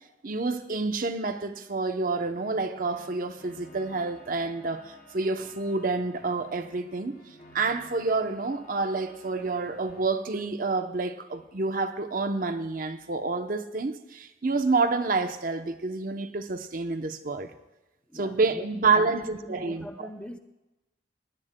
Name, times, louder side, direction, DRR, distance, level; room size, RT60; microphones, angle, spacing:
voice 1, 0.2-7.2 7.5-17.5 18.1-20.1, right 3 dB, 50° right, 0.7 m, -28 dB
sound 1, 2.1-10.1, left 1 dB, 40° left, 4.5 m, -52 dB
voice 2, 18.1-20.4, equal, 5° left, 0.5 m, -42 dB
20.0 x 17.5 x 2.2 m
head